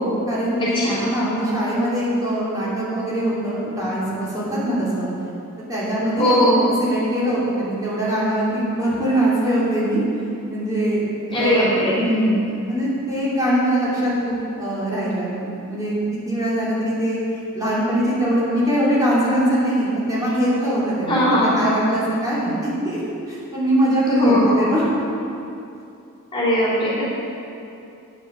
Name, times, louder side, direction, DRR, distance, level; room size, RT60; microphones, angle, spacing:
voice 1, 0.0-5.1 5.7-6.4 6.8-10.0 10.5-15.9 16.3-17.2 17.5-23.0 23.3-24.8, right 1 dB, 15° right, -9 dB, 3.0 m, -22 dB
voice 2, 0.6-1.1 6.2-6.6 11.3-12.0 21.1-21.7 24.2-24.6 26.3-27.0, equal, 25° left, -8 dB, 3.2 m, -19 dB
9.5 x 7.7 x 7.5 m, 2.7 s
head